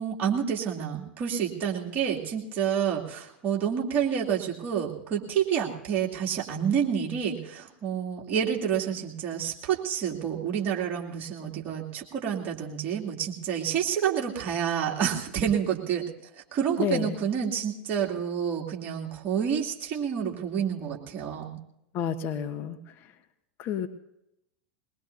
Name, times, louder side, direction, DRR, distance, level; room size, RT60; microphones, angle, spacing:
voice 1, 0.0-16.0 16.5-21.6, right 8 dB, 35° right, -2 dB, 2.7 m, -29 dB
voice 2, 16.8-17.2 21.9-22.8 23.6-23.9, left 8 dB, 40° left, 7 dB, 1.2 m, -29 dB
22.0 x 20.5 x 2.8 m, 0.83 s
figure-of-eight pair, 90°, 6 cm